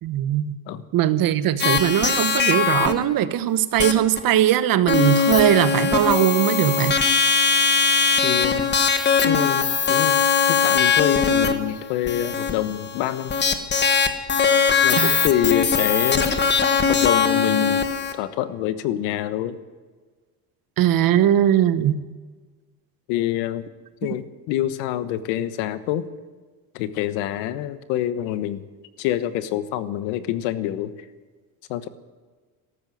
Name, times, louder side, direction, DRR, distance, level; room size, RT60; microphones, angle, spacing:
voice 1, 0.0-0.5 0.9-7.0 15.0-15.2 20.8-22.0, right 11 dB, 50° right, 13 dB, 1.1 m, -20 dB
sound 1, 1.6-2.9 3.8-4.2 4.9-18.1, left 6 dB, 25° left, 1.4 m, -20 dB
voice 2, 8.2-8.7 9.2-13.4 14.8-16.3 16.9-19.6 23.1-23.7 24.0-26.1 26.7-28.7 29.0-30.9 31.7-31.9, left 12 dB, 85° left, 12 dB, 1.2 m, -26 dB
13.5 x 12.5 x 7.8 m, 1.4 s
cardioid pair, 120°, 44 cm